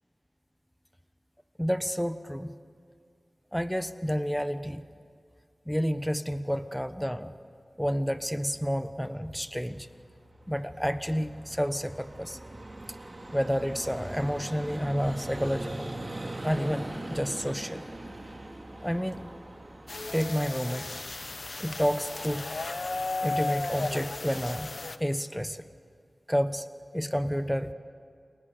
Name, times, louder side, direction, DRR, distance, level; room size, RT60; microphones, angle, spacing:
voice 1, 1.6-2.5 3.5-4.8 5.7-7.3 7.8-9.9 10.5-12.4 13.3-15.9 16.4-17.8 18.8-19.3 20.1-20.9 21.6-22.5 23.2-24.7 25.0-25.6 26.3-26.7 26.9-27.7, equal, ahead, 11 dB, 1.1 m, -30 dB
Vehicle, 9.4-24.1, right 1 dB, 40° right, 3.7 m, -42 dB
sound 1, 19.9-25.0, left 3 dB, 60° left, 1.2 m, -34 dB
30.0 x 29.0 x 6.9 m, 2.3 s
wide cardioid pair, 55°, 0 cm